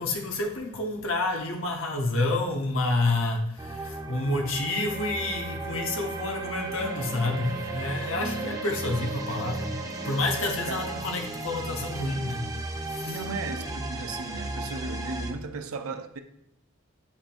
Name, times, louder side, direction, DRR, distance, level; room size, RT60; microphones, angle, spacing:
voice 1, 0.0-9.8 10.0-13.2, left 2 dB, 65° left, 0.9 m, -29 dB
sound 1, 3.6-15.3, right 2 dB, 15° right, 0.5 m, -36 dB
Wind instrument woodwind instrument, 4.9-11.1, right 6 dB, 45° right, 1.0 m, -40 dB
voice 2, 8.2-8.6 10.7-10.9 13.1-16.2, right 3 dB, 80° right, 0.6 m, -36 dB
8.4 x 5.1 x 2.6 m
head